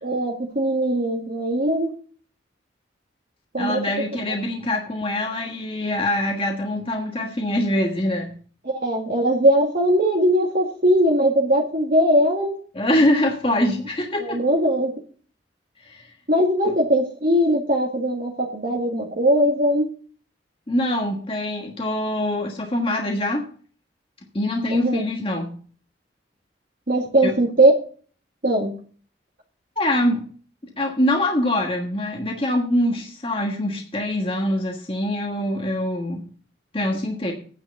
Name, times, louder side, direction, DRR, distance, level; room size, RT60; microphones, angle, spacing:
voice 1, 0.0-1.9 3.5-3.8 8.6-12.5 14.2-14.9 16.3-19.9 24.7-25.0 26.9-27.7 28.4-28.7, right 1 dB, 50° right, -1 dB, 1.8 m, -20 dB
voice 2, 3.6-8.3 12.7-14.4 15.8-16.1 16.6-16.7 20.7-23.4 24.3-25.5 27.2-27.3 29.8-30.3 30.8-36.2 36.7-37.3, left 1 dB, 30° left, 1 dB, 1.4 m, -24 dB
9.5 x 6.2 x 7.8 m, 0.43 s
head